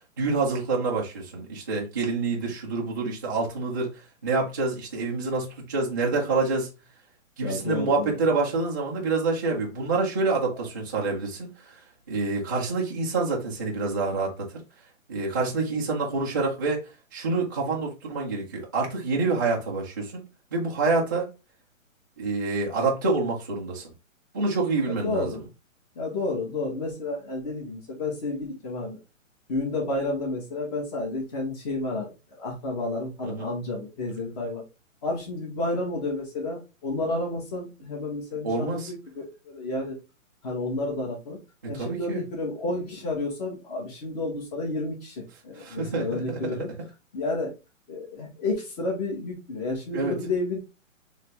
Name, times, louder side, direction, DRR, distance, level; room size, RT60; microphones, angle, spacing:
voice 1, 0.2-3.9 4.2-6.7 7.4-11.8 12.1-14.6 15.1-16.8 17.1-20.2 20.5-21.3 22.2-23.9 24.3-25.4 33.2-33.5 38.4-38.9 41.7-42.2 45.6-46.5 49.9-50.2, right 3 dB, 15° right, 0.4 m, -27 dB
voice 2, 7.4-8.1 24.9-25.4 26.0-29.0 29.5-32.1 32.4-34.6 35.0-40.0 40.4-41.4 41.7-46.7 47.1-47.5 47.9-50.6, left 2 dB, 30° left, 1.7 m, -31 dB
4.1 x 3.2 x 3.6 m
hypercardioid pair, 155°, 40 cm